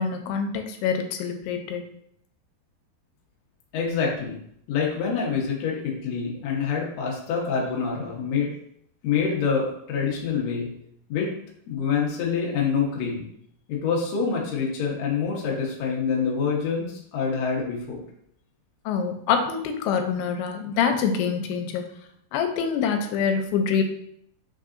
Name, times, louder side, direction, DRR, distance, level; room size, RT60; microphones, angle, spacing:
voice 1, 0.0-1.8 18.9-21.9 22.3-23.8, left 6 dB, 90° left, 6 dB, 2.6 m, -25 dB
voice 2, 3.7-4.4 4.7-8.5 9.0-10.7 11.1-11.3 11.7-13.2 13.7-18.0, left 6 dB, 70° left, -2 dB, 1.6 m, -26 dB
5.4 x 3.7 x 2.5 m, 0.70 s
omnidirectional pair, 4.4 m